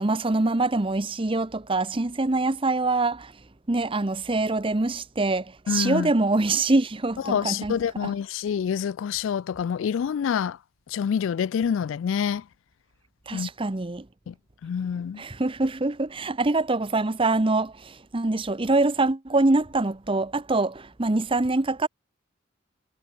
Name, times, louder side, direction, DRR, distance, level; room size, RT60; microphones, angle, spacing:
voice 1, 0.0-3.3 3.7-8.1 13.3-14.1 15.2-21.9, right 2 dB, 25° right, 0.8 m, -24 dB
voice 2, 5.7-6.1 7.2-10.6 10.9-12.5 13.3-13.5 14.3-14.4 14.6-15.2, left 7 dB, 65° left, 0.3 m, -27 dB
head